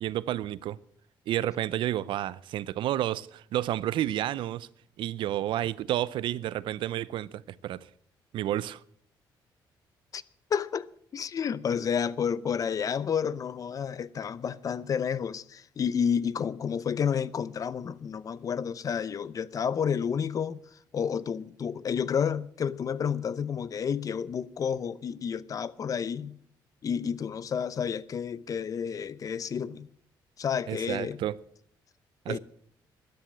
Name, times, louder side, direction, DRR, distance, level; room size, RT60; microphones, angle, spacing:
voice 1, 0.0-0.8 1.3-4.7 5.0-7.9 8.3-8.8 30.7-31.4 32.3-32.4, right 13 dB, 75° right, 0.5 m, -30 dB
voice 2, 10.5-26.3 26.8-29.9 30.4-31.2 32.3-32.4, left 7 dB, 45° left, 0.7 m, -30 dB
12.5 x 10.5 x 7.8 m
cardioid pair, 110°, 8 cm